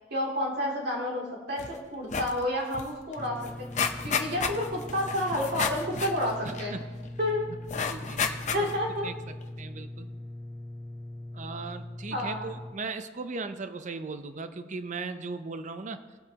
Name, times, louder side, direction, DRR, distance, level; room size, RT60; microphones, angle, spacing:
voice 1, 0.1-3.4 4.0-6.8 7.2-7.5 8.2-9.1 12.1-12.5, left 1 dB, 60° right, -2 dB, 2.8 m, -30 dB
sound 1, 1.6-1.8 2.0-2.4 2.7-2.8 3.1-7.1 7.7-8.9 9.4-9.5, left 6 dB, 40° left, 0.7 m, -32 dB
sound 2, 3.2-12.7, left 1 dB, 10° left, 0.4 m, -41 dB
voice 2, 6.4-6.8 7.8-8.7 9.0-9.1 9.6-10.1 11.3-16.0, right 4 dB, 40° right, 10 dB, 0.6 m, -38 dB
21.0 x 8.0 x 2.9 m, 1.3 s
head